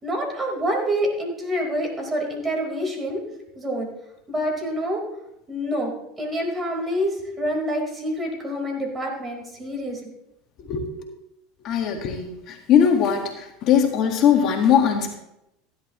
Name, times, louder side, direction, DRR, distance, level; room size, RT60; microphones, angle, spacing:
voice 1, 0.0-3.2 3.5-3.9 4.3-5.0 5.5-5.9 6.2-10.0, equal, 25° right, 1 dB, 4.5 m, -27 dB
voice 2, 11.6-13.3 13.6-15.1, left 8 dB, 50° left, 3 dB, 1.9 m, -20 dB
15.0 x 11.0 x 3.2 m, 0.86 s
hypercardioid pair, 95°, 0 cm